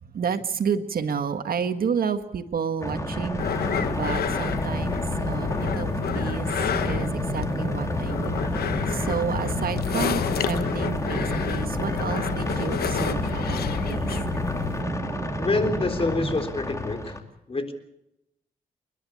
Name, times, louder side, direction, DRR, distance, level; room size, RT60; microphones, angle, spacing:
voice 1, 0.0-6.5 6.8-14.2, right 6 dB, 70° right, 9 dB, 1.7 m, -31 dB
sound 1, 2.8-17.2, left 2 dB, 20° left, 2.9 m, -33 dB
sound 2, 2.9-16.4, right 3 dB, 25° right, 1.5 m, -32 dB
sound 3, 3.4-14.8, left 8 dB, 90° left, 1.3 m, -29 dB
voice 2, 15.4-17.1 17.5-17.7, left 2 dB, 35° left, 7 dB, 3.8 m, -26 dB
29.5 x 11.5 x 8.6 m, 0.85 s
cardioid pair, 75°, 16 cm